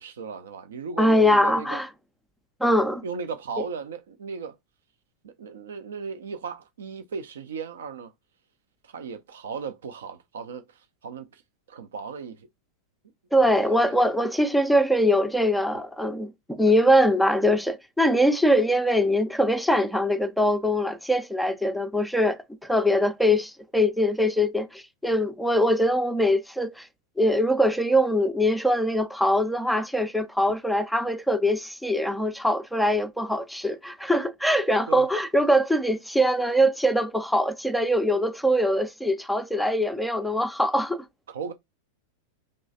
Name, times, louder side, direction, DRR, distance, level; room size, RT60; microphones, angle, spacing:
voice 1, 0.0-1.8 3.0-4.6 5.2-8.1 8.8-11.4 11.7-12.5 13.4-14.0 34.9-35.1 41.3-41.5, right 5 dB, 65° right, 0.5 m, -36 dB
voice 2, 1.0-1.9 2.6-3.0 3.6-3.7 13.3-16.3 16.6-26.9 27.2-41.0, equal, ahead, 0.4 m, -22 dB
5.2 x 3.1 x 2.6 m
figure-of-eight pair, 90°, 0 cm